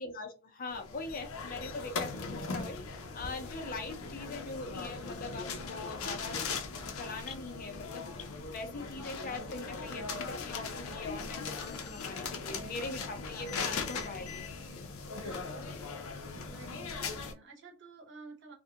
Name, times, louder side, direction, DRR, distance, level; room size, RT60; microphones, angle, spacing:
voice 1, 0.0-6.4 6.8-8.0 8.5-14.4, left 3 dB, 45° left, 5 dB, 0.6 m, -42 dB
sound 1, 0.7-17.3, left 4 dB, 90° left, 0.5 m, -39 dB
voice 2, 15.2-15.7 16.3-18.5, right 3 dB, 60° right, 1 dB, 0.8 m, -52 dB
2.3 x 2.1 x 2.7 m, 0.31 s
head